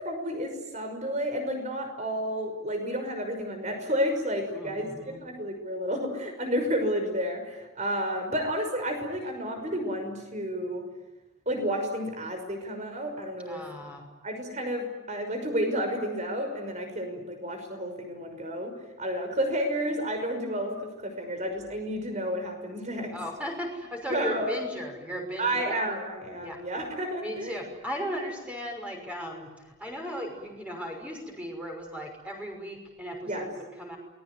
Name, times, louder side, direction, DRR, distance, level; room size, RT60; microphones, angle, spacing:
voice 1, 0.0-4.8 5.2-10.8 11.5-13.6 14.2-18.7 19.0-23.1 24.1-24.6 25.4-27.6 33.2-33.5, equal, 35° right, 6 dB, 5.8 m, -31 dB
voice 2, 4.5-5.2 13.5-14.0 23.1-25.8 26.4-26.6 27.2-34.0, equal, 5° right, 2 dB, 6.0 m, -36 dB
28.5 x 20.5 x 9.6 m, 1.0 s
head